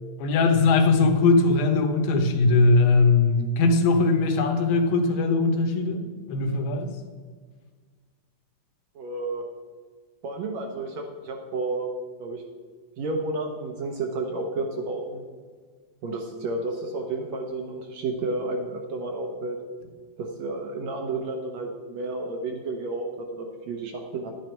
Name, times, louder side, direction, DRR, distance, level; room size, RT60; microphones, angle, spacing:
voice 1, 0.2-6.9, left 3 dB, 90° left, 5 dB, 2.9 m, -20 dB
voice 2, 9.0-9.4 10.2-11.9 12.2-12.4 13.0-15.3 16.0-19.6 20.2-24.3, right 2 dB, 65° right, 2 dB, 1.9 m, -31 dB
11.0 x 9.4 x 4.5 m, 1.6 s
omnidirectional pair, 4.0 m